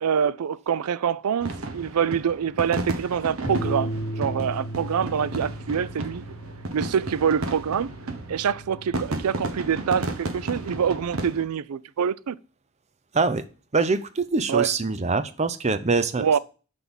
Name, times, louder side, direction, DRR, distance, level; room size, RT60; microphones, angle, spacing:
voice 1, 0.0-6.2 6.7-7.9 8.3-12.4 14.5-14.7 16.2-16.4, right 7 dB, 85° right, 0.4 m, -25 dB
sound 1, 1.4-11.4, right 2 dB, 65° right, 1.0 m, -33 dB
Bass guitar, 3.5-9.7, right 1 dB, 30° left, 1.1 m, -36 dB
voice 2, 13.7-16.4, right 4 dB, 30° right, 0.6 m, -24 dB
6.1 x 5.4 x 6.9 m
head